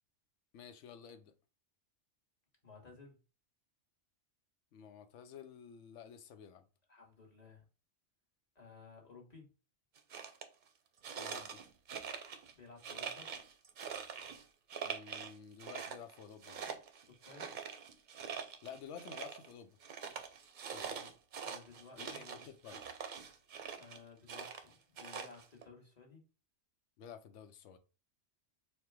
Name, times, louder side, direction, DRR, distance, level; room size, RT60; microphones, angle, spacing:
voice 1, 0.5-1.3 4.7-6.7 11.2-11.6 14.8-16.6 18.6-19.8 20.6-20.9 21.9-22.8 27.0-27.8, left 7 dB, 85° left, 0.9 m, -52 dB
voice 2, 2.6-3.2 6.9-7.6 8.5-9.5 12.5-13.3 17.3-17.6 20.8-21.1 21.4-22.5 23.8-26.2, left 4 dB, 35° left, 1.3 m, -56 dB
sound 1, 10.0-10.4 11.0-12.5 12.8-14.4 14.7-15.3 15.6-19.5 19.8-24.0 24.3-25.7, right 6 dB, 55° right, 0.6 m, -44 dB
4.3 x 2.2 x 4.5 m
omnidirectional pair, 1.2 m